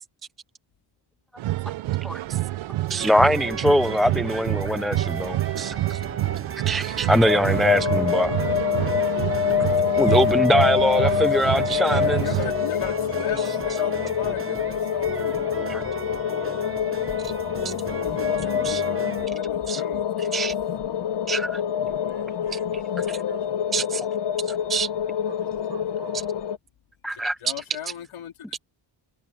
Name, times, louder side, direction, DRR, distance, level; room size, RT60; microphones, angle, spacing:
sound 1, 1.4-12.5, right 16 dB, 75° right, 0.6 m, -28 dB
voice 1, 2.9-6.0 6.7-8.3 10.0-12.2 15.7-15.8 17.6-17.7 18.6-18.8 19.7-19.8 20.2-20.5 21.3-21.6 23.7-24.1 24.7-24.9 27.0-27.4, equal, ahead, 0.4 m, -23 dB
sound 2, 2.9-19.3, right 5 dB, 25° right, 0.8 m, -36 dB
sound 3, 7.2-26.6, left 8 dB, 60° left, 0.9 m, -26 dB
voice 2, 11.1-11.4 12.0-15.4 17.6-20.4 27.1-28.6, left 11 dB, 90° left, 2.6 m, -37 dB
voice 3, 21.9-23.6 25.3-26.2, right 7 dB, 55° right, 6.7 m, -44 dB
wide cardioid pair, 155°, 48 cm